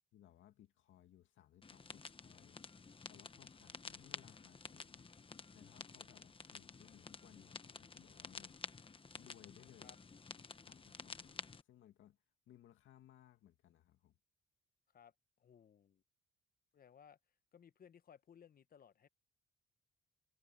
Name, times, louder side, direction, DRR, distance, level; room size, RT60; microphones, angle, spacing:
voice 1, 0.1-2.6 3.1-8.7 9.1-10.0 10.5-14.2, left 12 dB, 80° left, 2.0 m, -64 dB
sound 1, 1.6-11.6, left 4 dB, 25° left, 1.2 m, -52 dB
voice 2, 15.4-16.0 16.7-17.2 17.5-19.1, left 8 dB, 50° left, 1.1 m, -62 dB
cardioid pair, 90°, 20 cm